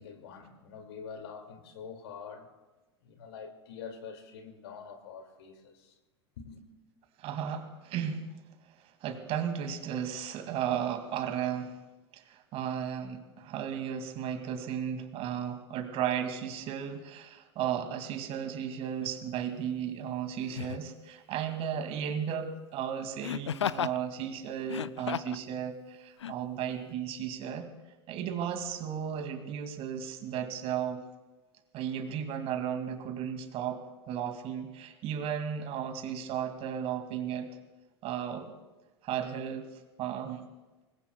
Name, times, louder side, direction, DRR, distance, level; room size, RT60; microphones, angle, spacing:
voice 1, 0.0-2.5 3.0-6.0 6.4-6.7, left 6 dB, 65° left, 2.3 m, -45 dB
voice 2, 7.2-8.2 9.0-11.8 12.1-27.7 28.1-31.0 31.7-33.8 34.1-37.5 38.0-38.5 39.0-39.7 40.0-40.5, right 9 dB, 45° right, 2.2 m, -34 dB
Laughter, 19.0-19.2 20.5-20.9 23.2-24.0 24.6-25.4 26.2-26.3, left 9 dB, 85° left, 0.4 m, -34 dB
25.5 x 20.5 x 2.3 m
figure-of-eight pair, 85°, 14 cm